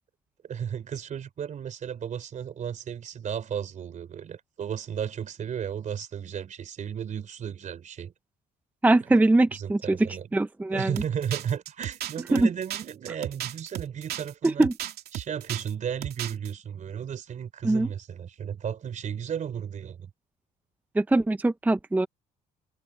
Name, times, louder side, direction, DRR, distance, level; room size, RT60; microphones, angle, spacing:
voice 1, 0.4-8.1 9.5-10.3 10.7-14.7 15.1-20.1, right 8 dB, 45° right, 3.6 m, -34 dB
voice 2, 8.8-10.9 12.3-12.5 14.4-14.7 17.6-17.9 20.9-22.1, right 2 dB, 10° right, 0.6 m, -22 dB
sound 1, 11.0-15.7 16.0-16.5, right 12 dB, 70° right, 2.8 m, -35 dB
cardioid pair, 110°, 17 cm